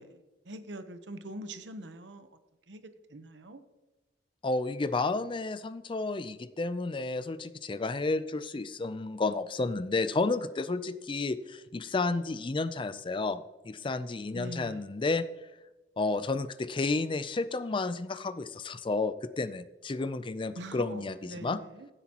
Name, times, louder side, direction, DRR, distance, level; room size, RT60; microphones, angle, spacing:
voice 1, 0.0-2.3 2.7-3.6 14.3-14.9 20.6-21.9, right 1 dB, 90° right, 9 dB, 1.0 m, -43 dB
voice 2, 4.4-15.2 16.0-21.1 21.4-21.6, left 3 dB, 30° left, 13 dB, 0.4 m, -31 dB
15.5 x 8.0 x 2.9 m, 1.1 s
head